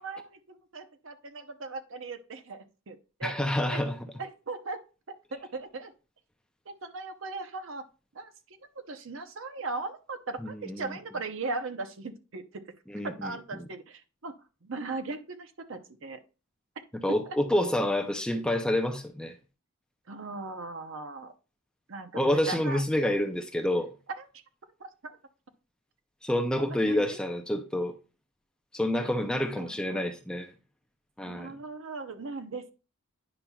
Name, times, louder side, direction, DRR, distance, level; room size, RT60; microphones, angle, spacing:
voice 1, 0.0-3.3 3.7-3.8 4.2-4.8 5.3-5.9 6.7-7.8 8.1-8.3 8.8-12.6 13.0-14.3 14.6-16.2 20.1-21.3 21.9-22.8 24.2-24.3 24.8-25.1 26.6-27.2 29.6-30.0 31.2-32.7, right 3 dB, 65° right, 0.7 m, -38 dB
voice 2, 3.2-4.0 10.4-10.9 12.9-13.7 16.9-19.4 22.1-23.9 26.2-28.0 28.7-30.5 31.2-31.5, left 1 dB, 5° left, 0.5 m, -28 dB
9.8 x 5.5 x 2.3 m
head